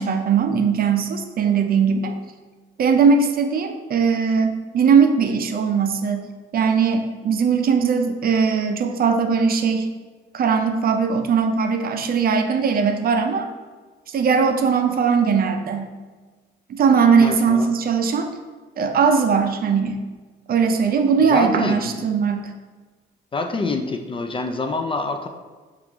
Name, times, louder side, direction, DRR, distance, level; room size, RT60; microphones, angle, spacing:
voice 1, 0.0-2.2 2.8-6.3 6.5-9.9 10.3-13.5 14.1-15.9 16.7-18.3 18.8-20.0 20.5-22.5, right 6 dB, 50° right, 6 dB, 0.5 m, -19 dB
voice 2, 17.2-17.7 21.2-22.0 23.3-25.3, left 3 dB, 25° left, 6 dB, 0.3 m, -26 dB
4.5 x 2.5 x 3.5 m, 1.4 s
cardioid pair, 90°, 20 cm